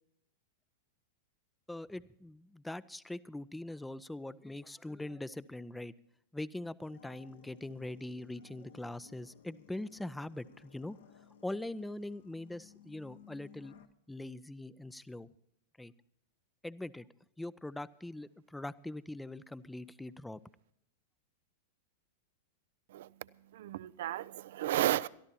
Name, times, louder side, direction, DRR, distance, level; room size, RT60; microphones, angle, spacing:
voice 1, 1.7-5.9 6.3-11.0 11.4-13.7 14.1-15.3 15.8-15.9 16.6-17.1 17.4-20.4, left 1 dB, 5° left, 0.5 m, -42 dB
sound 1, 6.8-13.9, left 7 dB, 70° left, 1.2 m, -59 dB
voice 2, 23.5-25.1, right 13 dB, 60° right, 0.4 m, -33 dB
23.0 x 13.5 x 2.8 m
figure-of-eight pair, 95°, 0 cm